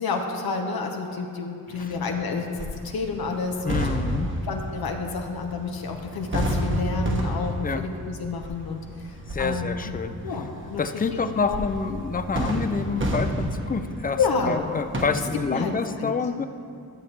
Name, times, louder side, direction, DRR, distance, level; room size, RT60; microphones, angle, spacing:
voice 1, 0.0-3.9 4.5-9.1 9.4-9.9 10.2-11.6 14.1-14.7 15.5-16.1, left 4 dB, 70° left, 3 dB, 0.9 m, -29 dB
sound 1, 1.7-15.1, equal, 30° right, 1.2 m, -31 dB
voice 2, 3.6-4.3 7.6-7.8 9.3-10.1 10.8-14.2 14.5-16.4, left 5 dB, 25° left, 10 dB, 0.5 m, -27 dB
12.0 x 7.0 x 3.3 m, 2.5 s
cardioid pair, 60°, 38 cm